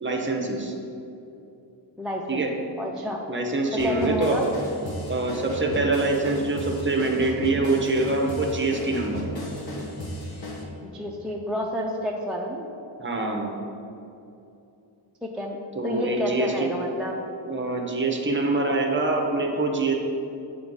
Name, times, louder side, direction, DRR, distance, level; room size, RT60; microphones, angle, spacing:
voice 1, 0.0-0.7 2.3-2.5 3.3-4.4 5.1-9.2 13.0-13.6 15.8-16.7 17.5-19.9, right 2 dB, 25° right, 1 dB, 0.7 m, -25 dB
voice 2, 2.0-2.5 2.8-3.2 3.7-4.5 10.8-12.7 15.2-15.6 15.8-17.2, equal, ahead, -1 dB, 0.3 m, -29 dB
sound 1, 3.8-10.6, left 1 dB, 50° left, 1.1 m, -34 dB
7.8 x 3.0 x 5.3 m, 2.7 s
wide cardioid pair, 135°, 47 cm